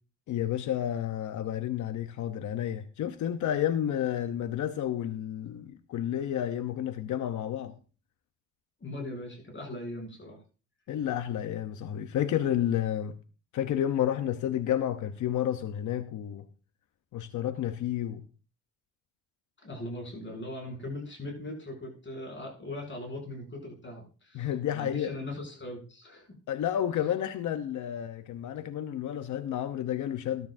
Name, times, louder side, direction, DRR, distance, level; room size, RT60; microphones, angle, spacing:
voice 1, 0.3-7.7 10.9-13.1 13.5-16.4 17.1-18.2 24.3-25.1 26.5-30.5, left 10 dB, 90° left, 0.8 m, -31 dB
voice 2, 8.8-10.4 19.6-26.3, left 1 dB, 40° left, 6.7 m, -40 dB
13.5 x 12.0 x 2.6 m
cardioid pair, 75°, 29 cm